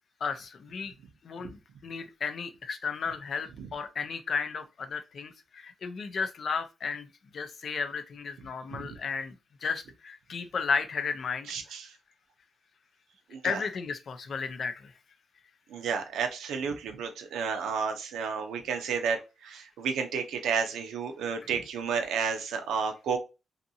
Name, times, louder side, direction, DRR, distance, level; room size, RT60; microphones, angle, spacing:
voice 1, 0.2-0.9 1.2-1.6 1.8-9.4 9.6-11.5 13.4-14.9, left 5 dB, 60° left, 0.5 m, -34 dB
voice 2, 11.5-11.9 13.3-13.6 15.7-23.2, right 6 dB, 90° right, 0.5 m, -31 dB
2.6 x 2.5 x 2.6 m
cardioid pair, 75°, 0 cm